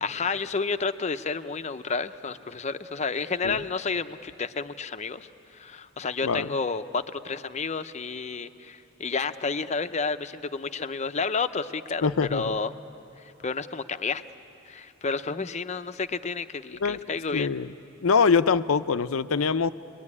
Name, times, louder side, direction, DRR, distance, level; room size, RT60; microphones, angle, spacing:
voice 1, 0.0-12.7 13.2-14.2 14.7-17.5, left 4 dB, 35° left, 10 dB, 0.7 m, -31 dB
voice 2, 6.2-6.6 12.0-12.6 16.8-17.0 17.3-17.7 18.0-19.7, left 5 dB, 80° left, 13 dB, 0.6 m, -24 dB
29.0 x 21.5 x 9.7 m, 3.0 s
head